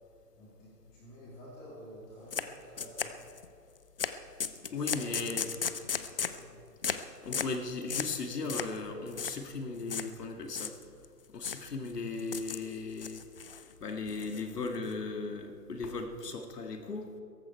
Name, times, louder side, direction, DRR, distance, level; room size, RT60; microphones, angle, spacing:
voice 1, 0.4-3.2 4.6-5.2 5.5-6.7, equal, 20° left, -6 dB, 2.9 m, -51 dB
sound 1, 2.3-2.5 2.8-3.5 4.0-4.1 4.4-6.4 6.8-7.0 7.3-7.6 7.9-8.2 8.5-8.8 9.1-9.3 9.9-10.1 10.5-11.1 11.4-11.7 12.2-12.7 13.0-13.6 14.1-14.9, left 6 dB, 40° left, 0.5 m, -35 dB
voice 2, 4.7-5.5 7.2-10.7 11.3-13.3 13.8-17.1, left 3 dB, 75° left, 4 dB, 2.2 m, -37 dB
17.5 x 14.5 x 4.6 m, 2.4 s
hypercardioid pair, 160°, 48 cm